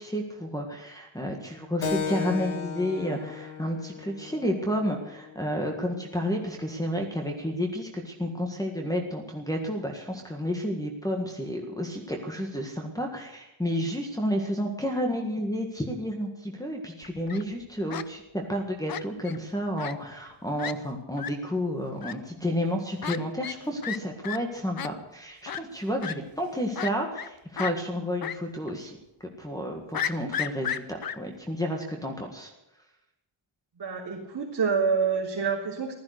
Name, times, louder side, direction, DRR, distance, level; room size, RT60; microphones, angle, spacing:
voice 1, 0.0-29.0 29.4-32.5, equal, 5° left, -1 dB, 1.7 m, -31 dB
Keyboard (musical), 1.8-6.9, left 6 dB, 75° left, 1.9 m, -36 dB
Fowl, 17.0-17.4 17.9-18.1 18.9-19.4 19.8-19.9 20.2-20.3 20.6-20.7 21.2-21.3 22.0-22.1 23.0-23.2 23.4-23.6 23.8-24.0 24.2-24.4 24.8-24.9 25.5-25.6 26.0-26.1 26.7-27.3 27.6-27.7 28.2-28.4 28.7-28.8 29.9-31.1, left 9 dB, 45° left, 0.7 m, -32 dB
voice 2, 33.8-35.9, right 5 dB, 45° right, -7 dB, 3.6 m, -27 dB
15.5 x 13.0 x 6.6 m, 0.93 s
wide cardioid pair, 175°, 49 cm